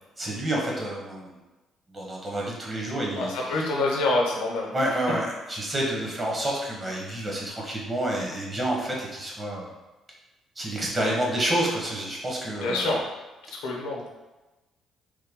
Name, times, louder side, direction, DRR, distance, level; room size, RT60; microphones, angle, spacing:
voice 1, 0.2-1.4 1.9-3.8 4.7-9.7 10.6-12.9, right 1 dB, 30° right, -3 dB, 1.2 m, -29 dB
voice 2, 3.2-4.7 12.6-13.0 13.6-14.0, left 2 dB, 85° left, -1 dB, 0.7 m, -26 dB
3.2 x 2.2 x 3.6 m, 1.1 s
supercardioid pair, 70°, 0 cm